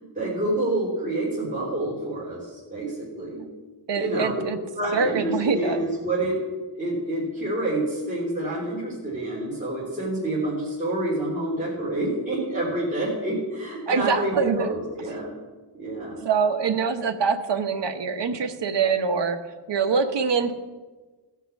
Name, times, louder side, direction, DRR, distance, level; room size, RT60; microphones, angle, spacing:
voice 1, 0.1-3.5 4.0-4.4 4.7-6.4 6.8-15.3 15.7-16.3, right 1 dB, 15° right, -8 dB, 3.2 m, -28 dB
voice 2, 3.9-4.6 4.9-5.8 13.9-14.7 15.1-15.2 16.2-19.4 19.7-20.5, right 5 dB, 55° right, 7 dB, 1.0 m, -24 dB
16.5 x 5.9 x 7.1 m, 1.3 s
wide cardioid pair, 170°, 50 cm